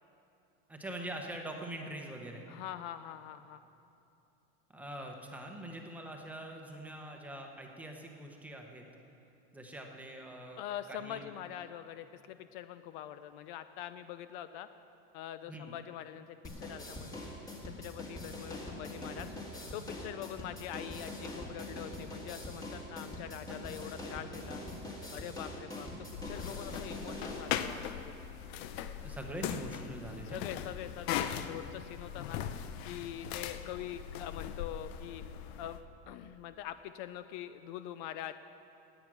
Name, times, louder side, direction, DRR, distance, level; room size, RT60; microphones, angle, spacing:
voice 1, 0.7-2.4 4.7-8.8 9.5-10.6 10.9-11.2 15.5-15.7 29.0-30.4, right 1 dB, 5° right, 2 dB, 0.9 m, -43 dB
voice 2, 2.5-3.6 10.6-14.7 15.1-17.2 17.6-19.3 19.7-24.6 25.1-25.9 26.2-28.1 30.2-32.4 32.8-35.2 35.6-35.8 36.1-38.4, left 11 dB, 55° left, 12 dB, 0.5 m, -44 dB
sound 1, 16.4-27.4, left 1 dB, 10° left, 1.6 m, -43 dB
sound 2, 26.1-35.8, left 9 dB, 75° left, 0.8 m, -39 dB
18.0 x 8.9 x 6.1 m, 2.8 s
cardioid pair, 170°, 31 cm